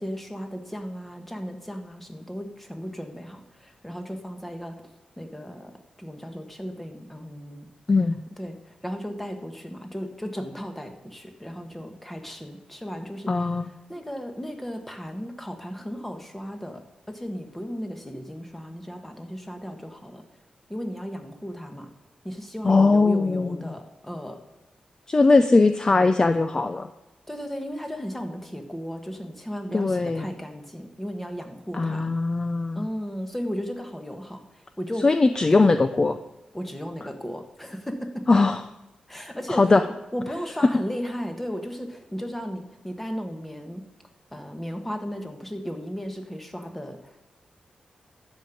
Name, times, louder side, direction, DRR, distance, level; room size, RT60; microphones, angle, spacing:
voice 1, 0.0-4.8 5.2-5.7 6.0-7.7 8.4-20.2 20.7-21.9 22.2-24.4 27.3-32.1 32.7-35.1 35.5-35.8 36.5-38.3 39.1-43.8 44.3-47.2, equal, 10° left, 5 dB, 1.5 m, -35 dB
voice 2, 13.3-13.7 22.6-23.6 25.1-26.9 29.7-30.3 31.7-32.9 35.0-36.1 38.3-38.6 39.5-39.8, left 3 dB, 30° left, 9 dB, 0.5 m, -20 dB
13.0 x 5.3 x 8.5 m, 1.0 s
wide cardioid pair, 110°, 2 cm